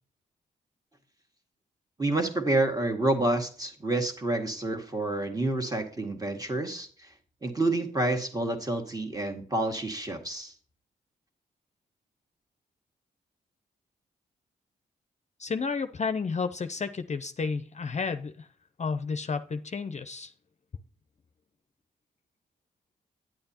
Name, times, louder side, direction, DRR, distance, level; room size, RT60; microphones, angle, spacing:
voice 1, 2.0-7.1 7.4-10.5, right 2 dB, 20° right, 4 dB, 1.9 m, -28 dB
voice 2, 15.4-18.5 18.8-20.3, left 5 dB, 40° left, 10 dB, 0.6 m, -31 dB
9.7 x 8.6 x 2.8 m, 0.42 s
supercardioid pair, 45°, 19 cm